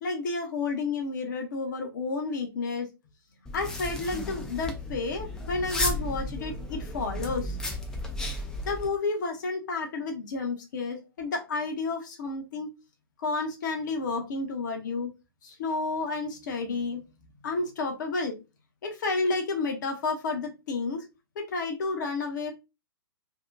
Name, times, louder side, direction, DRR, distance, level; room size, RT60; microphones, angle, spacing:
voice 1, 0.0-2.9 3.5-7.6 8.7-12.7 13.2-15.1 15.4-17.0 17.4-18.4 18.8-21.0 21.4-22.5, left 3 dB, 50° left, 3 dB, 0.7 m, -31 dB
sound 1, 3.5-8.9, left 1 dB, 5° left, 0.3 m, -33 dB
2.7 x 2.1 x 2.3 m, 0.26 s
figure-of-eight pair, 115°, 13 cm